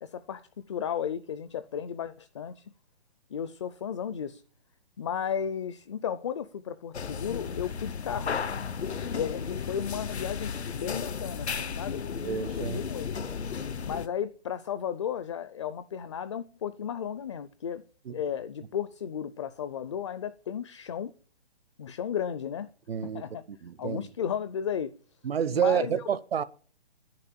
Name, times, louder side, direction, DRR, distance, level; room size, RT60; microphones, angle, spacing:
voice 1, 0.0-2.6 3.3-4.4 5.0-8.4 9.1-12.0 12.6-13.1 13.9-17.8 18.1-21.1 21.8-22.7 23.0-23.4 23.8-24.9 25.5-26.0, left 8 dB, 30° left, 0.5 m, -34 dB
sound 1, 6.9-14.1, left 6 dB, 85° left, 1.1 m, -34 dB
voice 2, 12.2-12.8 18.1-18.2 22.9-24.1 25.2-26.4, right 8 dB, 70° right, 0.9 m, -29 dB
10.5 x 10.5 x 7.3 m
hypercardioid pair, 155°, 32 cm